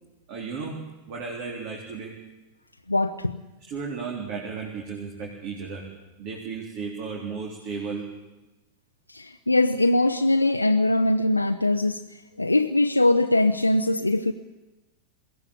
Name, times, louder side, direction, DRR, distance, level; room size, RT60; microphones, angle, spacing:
voice 1, 0.3-2.2 3.7-5.9 6.2-8.1, right 5 dB, 45° right, -1 dB, 3.8 m, -34 dB
voice 2, 2.9-3.4 9.1-14.3, left 2 dB, 85° left, 5 dB, 0.7 m, -22 dB
22.0 x 17.0 x 8.6 m, 1.1 s
figure-of-eight pair, 90°, 0 cm